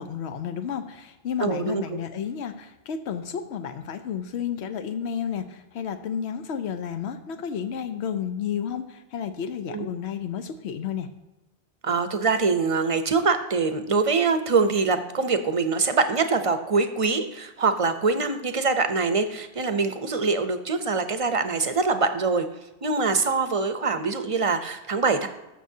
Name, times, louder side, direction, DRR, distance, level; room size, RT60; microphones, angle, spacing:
voice 1, 0.0-11.1, left 8 dB, 90° left, 8 dB, 0.9 m, -31 dB
voice 2, 1.4-2.0 9.7-9.9 11.8-22.5 22.8-25.3, right 4 dB, 40° right, 9 dB, 0.6 m, -24 dB
13.5 x 6.3 x 2.7 m, 1.0 s
omnidirectional pair, 1.1 m